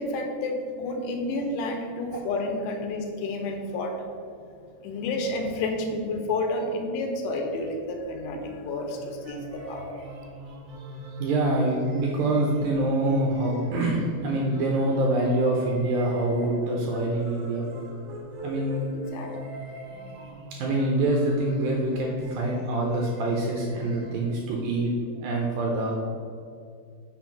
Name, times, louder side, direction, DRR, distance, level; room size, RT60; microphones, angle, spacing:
voice 1, 0.0-4.0 4.8-9.9 18.9-19.3, left 2 dB, 80° left, 3 dB, 2.9 m, -30 dB
sound 1, 8.4-24.2, right 1 dB, 55° right, 2.5 m, -39 dB
voice 2, 11.2-17.7 18.4-18.8 20.6-26.0, right 2 dB, 80° right, -1 dB, 2.1 m, -25 dB
6.3 x 4.4 x 5.8 m, 2.3 s
omnidirectional pair, 4.8 m